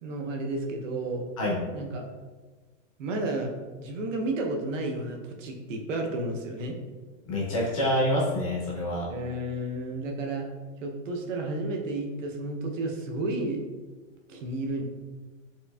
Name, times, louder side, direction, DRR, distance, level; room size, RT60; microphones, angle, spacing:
voice 1, 0.0-1.3 1.7-2.0 3.0-3.5 3.8-6.8 9.1-10.4 10.8-13.6 14.3-14.8, right 2 dB, 70° right, 2 dB, 0.7 m, -32 dB
voice 2, 7.3-9.1, left 1 dB, 30° left, -5 dB, 0.5 m, -26 dB
4.5 x 2.6 x 2.2 m, 1.3 s
supercardioid pair, 180°, 40 cm